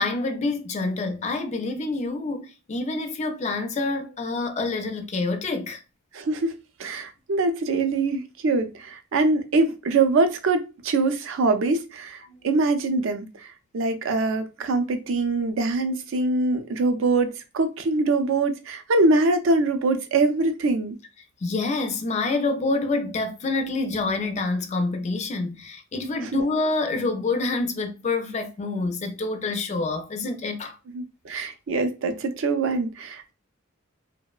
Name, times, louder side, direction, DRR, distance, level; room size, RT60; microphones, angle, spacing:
voice 1, 0.0-5.8 12.2-12.5 21.4-30.8, left 3 dB, 35° left, 0.4 m, -27 dB
voice 2, 6.1-21.0 26.2-26.4 30.9-33.3, right 3 dB, 65° right, 0.4 m, -24 dB
2.9 x 2.0 x 2.3 m
head